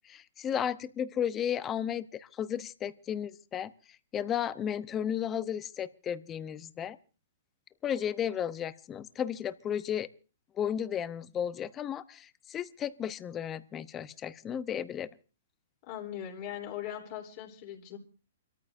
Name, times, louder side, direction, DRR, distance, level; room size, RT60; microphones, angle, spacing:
voice 1, 0.1-3.7 4.1-7.0 7.8-10.1 10.6-15.1, left 9 dB, 20° left, 14 dB, 0.8 m, -34 dB
voice 2, 15.9-18.0, left 10 dB, 45° left, 0 dB, 3.4 m, -40 dB
29.0 x 13.5 x 2.7 m, 0.35 s
hypercardioid pair, 135°, 0 cm